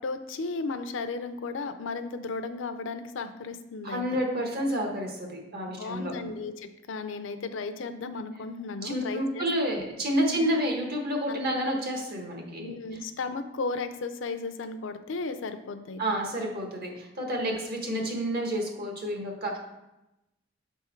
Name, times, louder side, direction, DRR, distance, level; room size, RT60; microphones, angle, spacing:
voice 1, 0.0-4.2 5.7-9.9 10.2-10.5 11.3-11.4 12.6-16.0 17.3-17.6 17.9-18.0, left 3 dB, 70° left, 9 dB, 0.5 m, -35 dB
voice 2, 3.8-6.1 8.8-12.7 16.0-19.6, equal, 50° right, 1 dB, 1.2 m, -29 dB
7.0 x 3.6 x 4.4 m, 0.95 s
head